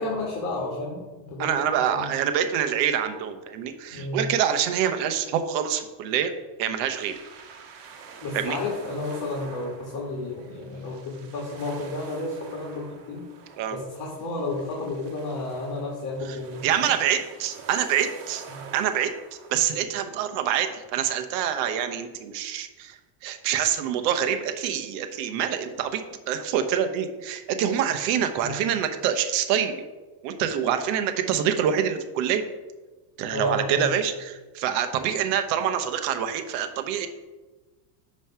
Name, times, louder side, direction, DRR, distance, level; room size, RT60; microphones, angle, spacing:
voice 1, 0.0-2.1 3.9-4.3 8.2-13.2 13.7-16.8 18.5-18.7 28.4-28.6 33.3-33.8, left 2 dB, 40° left, -2 dB, 1.7 m, -32 dB
voice 2, 1.4-6.3 6.6-7.1 8.3-8.6 13.6-13.8 16.6-18.4 18.7-19.1 19.5-23.0 23.2-29.7 30.2-32.4 33.2-37.1, right 9 dB, 80° right, 8 dB, 0.9 m, -26 dB
sound 1, 6.9-19.8, right 5 dB, 55° right, 1.3 m, -47 dB
9.2 x 3.1 x 5.6 m, 1.2 s
supercardioid pair, 120°, 50 cm